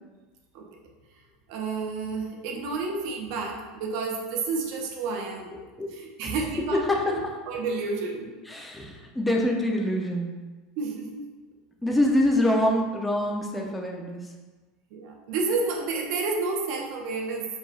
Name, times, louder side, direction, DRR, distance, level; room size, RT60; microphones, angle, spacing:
voice 1, 1.5-5.5 6.0-6.8 7.5-8.3 10.8-11.3 14.9-17.5, right 4 dB, 60° right, 1 dB, 0.7 m, -30 dB
voice 2, 5.5-5.9 6.2-6.3 6.7-7.3 8.4-10.3 11.8-14.2, left 1 dB, 5° left, 0 dB, 0.5 m, -25 dB
4.7 x 2.2 x 4.1 m, 1.3 s
supercardioid pair, 150°, 0 cm